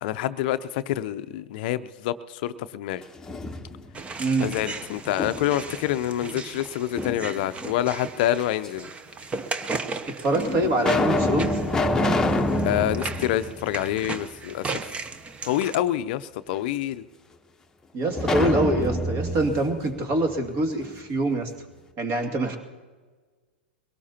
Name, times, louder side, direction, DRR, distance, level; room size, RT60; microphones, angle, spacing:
voice 1, 0.0-3.0 4.4-8.9 12.6-14.9 15.4-17.0, left 13 dB, 55° left, 12 dB, 0.6 m, -27 dB
sound 1, 3.0-4.0 4.4-5.7 7.0-7.8 8.6-8.7 9.6-9.7 10.3-14.4 14.7-14.8 18.1-20.9, left 2 dB, 10° left, 1.0 m, -27 dB
sound 2, 3.9-15.7, right 4 dB, 20° right, 0.8 m, -36 dB
voice 2, 4.2-4.5 10.1-11.6 17.9-21.5 22.0-22.6, right 2 dB, 40° right, 5 dB, 2.4 m, -25 dB
22.5 x 18.0 x 2.9 m, 1.4 s
hypercardioid pair, 105°, 6 cm